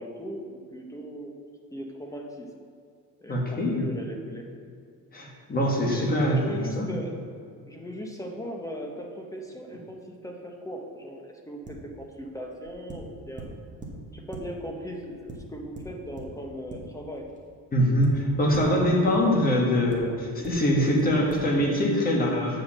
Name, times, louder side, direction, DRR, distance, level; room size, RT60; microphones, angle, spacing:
voice 1, 0.0-1.3 1.7-2.5 3.2-4.4 5.9-7.3 7.7-13.5 14.1-17.3, equal, 10° left, 1 dB, 0.7 m, -38 dB
voice 2, 3.3-3.9 5.1-6.9 17.7-22.6, equal, 25° left, -1 dB, 1.6 m, -23 dB
sound 1, 11.6-12.0 12.6-14.8 15.3-17.4 17.8-19.1 19.9-20.0 20.4-20.5 21.0-21.1 21.3-21.4, right 2 dB, 20° right, 1.2 m, -42 dB
7.8 x 5.2 x 7.3 m, 2.2 s
cardioid pair, 175°, 37 cm